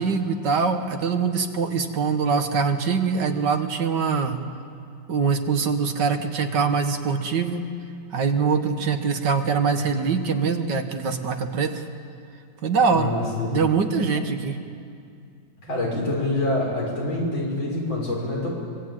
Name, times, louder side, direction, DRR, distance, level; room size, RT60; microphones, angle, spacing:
voice 1, 0.0-4.4 5.1-7.6 8.1-11.7 12.6-13.1 13.5-14.6, right 5 dB, 65° right, 6 dB, 2.0 m, -23 dB
voice 2, 12.9-13.6 15.6-18.5, left 2 dB, 80° left, -3 dB, 6.5 m, -26 dB
24.5 x 21.5 x 9.0 m, 2.4 s
omnidirectional pair, 2.1 m